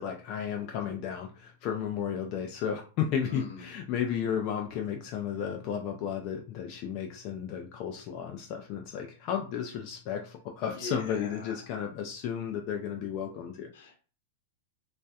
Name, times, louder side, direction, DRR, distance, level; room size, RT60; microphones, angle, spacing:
voice 1, 0.0-13.7, left 8 dB, 40° left, 2 dB, 0.3 m, -33 dB
voice 2, 10.7-11.5 13.7-14.0, left 4 dB, 75° left, 1 dB, 0.8 m, -41 dB
2.3 x 2.1 x 2.7 m, 0.37 s
supercardioid pair, 155°, 0 cm